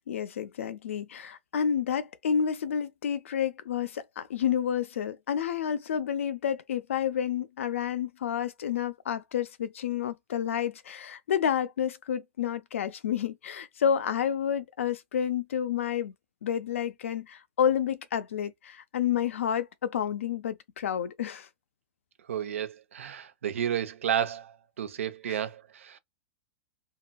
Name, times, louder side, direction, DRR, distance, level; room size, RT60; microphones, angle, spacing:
voice 1, 0.0-16.1 16.4-21.5 25.3-25.4, left 8 dB, 85° left, 0.5 m, -30 dB
voice 2, 22.3-26.0, right 9 dB, 90° right, 0.7 m, -32 dB
2.8 x 2.6 x 2.2 m
hypercardioid pair, 130°, 7 cm